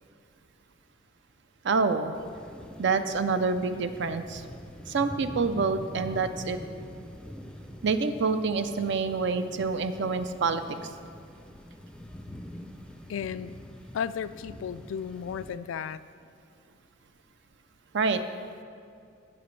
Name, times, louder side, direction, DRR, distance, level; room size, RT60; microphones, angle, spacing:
voice 1, 1.6-2.1 2.8-4.4 4.9-6.6 7.8-10.6 17.9-18.2, right 4 dB, 65° right, 10 dB, 0.5 m, -27 dB
sound 1, 2.1-15.6, equal, 5° left, 0.4 m, -44 dB
voice 2, 13.1-13.6 13.9-16.0, left 7 dB, 80° left, 14 dB, 0.3 m, -34 dB
17.5 x 6.0 x 3.2 m, 2.4 s
head